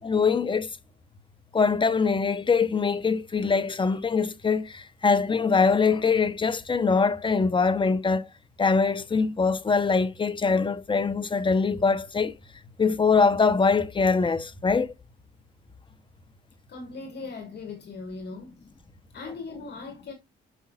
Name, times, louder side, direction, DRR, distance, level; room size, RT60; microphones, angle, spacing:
voice 1, 0.0-0.7 1.5-8.3 8.6-12.3 12.8-14.9, left 4 dB, 25° left, 0.9 m, -23 dB
voice 2, 16.7-18.6 19.1-20.1, left 3 dB, 60° left, 2.3 m, -39 dB
11.0 x 5.5 x 2.5 m
cardioid pair, 90°, 20 cm